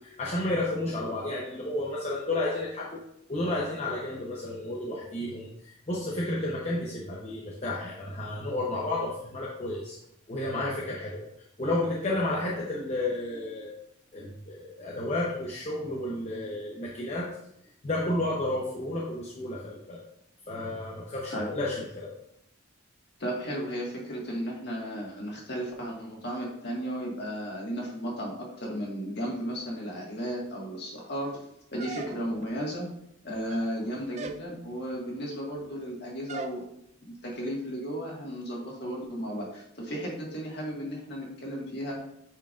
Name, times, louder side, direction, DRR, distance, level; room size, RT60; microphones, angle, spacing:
voice 1, 0.0-3.0 3.3-10.0 10.3-11.3 11.6-13.7 14.1-17.3 17.8-20.0 20.5-22.1, left 1 dB, 35° left, -4 dB, 0.8 m, -31 dB
voice 2, 23.2-31.4 31.7-32.9 33.2-36.6 37.0-42.0, equal, 55° left, -2 dB, 1.7 m, -34 dB
sound 1, 31.8-32.5 33.3-33.8 34.1-34.5 36.3-36.6, right 4 dB, 35° right, 0.3 m, -40 dB
9.1 x 4.5 x 2.5 m, 0.78 s
head